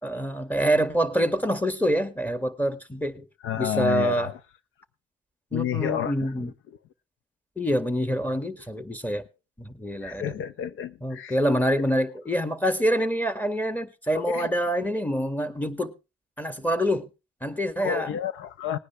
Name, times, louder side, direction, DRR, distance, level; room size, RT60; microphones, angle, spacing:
voice 1, 0.0-3.3 3.6-4.3 5.5-6.5 7.6-9.2 9.6-10.4 11.0-16.0 16.4-17.1 17.4-18.1, equal, 10° left, 1.9 m, -26 dB
voice 2, 3.4-4.4 5.5-6.4 10.0-11.3 14.2-14.5 17.8-18.8, left 10 dB, 85° left, 0.8 m, -30 dB
20.0 x 9.7 x 3.3 m
cardioid pair, 90°, 20 cm